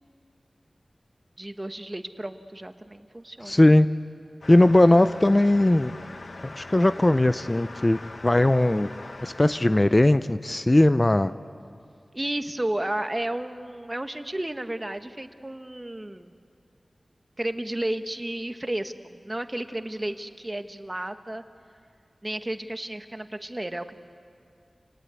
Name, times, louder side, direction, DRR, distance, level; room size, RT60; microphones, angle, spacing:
voice 1, 1.4-3.8 12.1-16.3 17.4-21.4 22.2-23.9, right 1 dB, 25° right, 8 dB, 1.3 m, -32 dB
voice 2, 3.5-3.9 4.5-5.9 6.4-8.9 9.2-11.3, left 1 dB, 30° left, 12 dB, 0.6 m, -19 dB
sound 1, 4.4-10.4, left 2 dB, 65° left, 1.2 m, -42 dB
29.0 x 18.5 x 8.4 m, 2.3 s
wide cardioid pair, 55°, 0 cm